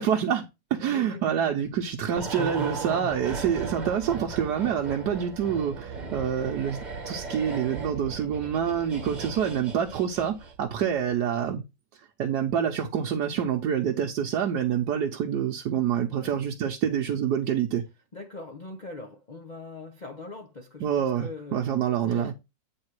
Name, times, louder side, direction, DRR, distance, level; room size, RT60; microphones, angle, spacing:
voice 1, 0.0-6.8 7.1-11.6 12.2-17.8 20.8-22.3, right 8 dB, 70° right, 1.3 m, -27 dB
voice 2, 0.8-1.5 16.1-16.4 18.1-21.7 22.0-22.3, left 2 dB, 45° left, 0.5 m, -41 dB
sound 1, 2.2-10.7 11.0-11.1, right 4 dB, 25° right, 1.2 m, -37 dB
8.8 x 3.7 x 4.6 m
omnidirectional pair, 2.0 m